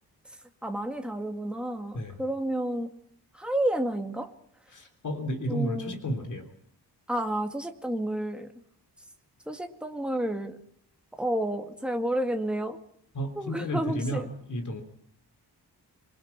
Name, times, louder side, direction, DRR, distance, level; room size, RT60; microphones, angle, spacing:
voice 1, 0.6-2.9 3.3-4.3 5.5-6.0 7.1-8.5 9.5-10.6 11.2-12.8 13.4-14.3, right 1 dB, ahead, 4 dB, 2.1 m, -30 dB
voice 2, 4.7-6.5 13.1-14.8, equal, 45° left, 7 dB, 3.6 m, -32 dB
26.5 x 22.5 x 5.9 m, 0.68 s
wide cardioid pair, 175°, 40 cm